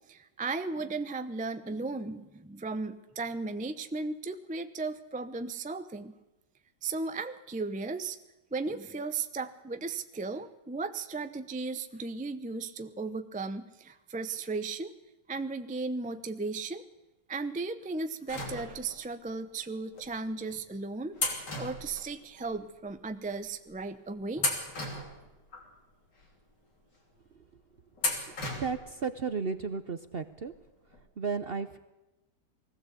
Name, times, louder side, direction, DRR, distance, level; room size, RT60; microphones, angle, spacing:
voice 1, 0.1-6.1 6.8-8.2 8.5-14.9 15.3-16.8 17.3-24.6, right 3 dB, 10° right, 10 dB, 0.4 m, -36 dB
sound 1, 18.3-19.1 19.9-20.1 21.2-22.6 22.9-23.0 23.7-23.9 24.4-25.7 26.2-26.3 28.0-28.9 29.2-29.3 30.5-30.6 30.9-31.0, left 2 dB, 75° left, 3.7 m, -35 dB
voice 2, 28.6-30.5 31.2-31.8, right 5 dB, 50° right, 11 dB, 0.7 m, -33 dB
20.5 x 15.5 x 8.3 m, 1.0 s
omnidirectional pair, 1.9 m